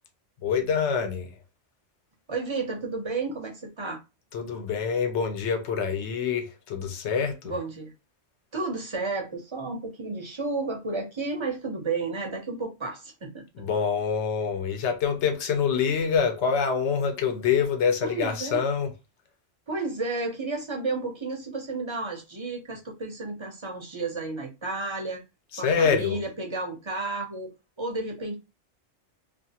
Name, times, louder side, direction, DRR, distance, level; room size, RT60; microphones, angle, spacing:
voice 1, 0.4-1.3 4.3-7.5 13.6-18.9 25.5-26.2, left 6 dB, 75° left, 1.0 m, -26 dB
voice 2, 2.3-4.0 7.4-7.9 8.5-13.4 18.0-18.6 19.7-25.2 25.6-27.5 27.8-28.3, right 3 dB, 35° right, 0.5 m, -32 dB
2.5 x 2.4 x 2.7 m
omnidirectional pair, 1.2 m